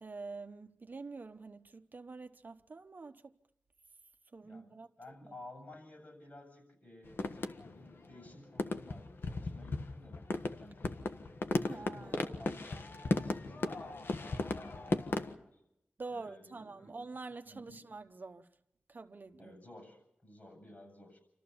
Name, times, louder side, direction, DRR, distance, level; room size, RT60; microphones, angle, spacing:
voice 1, 0.0-3.4 4.3-5.3 11.7-12.4 16.0-18.5 18.9-19.6, right 3 dB, 50° right, 1.0 m, -47 dB
voice 2, 4.4-11.3 11.6-15.6 16.1-16.9 17.5-17.8 19.4-21.2, left 1 dB, 40° left, 7.6 m, -54 dB
sound 1, 7.1-7.9 8.3-8.4 8.5-15.3, left 2 dB, 65° left, 1.4 m, -36 dB
28.0 x 13.5 x 7.1 m
wide cardioid pair, 85°, 4 cm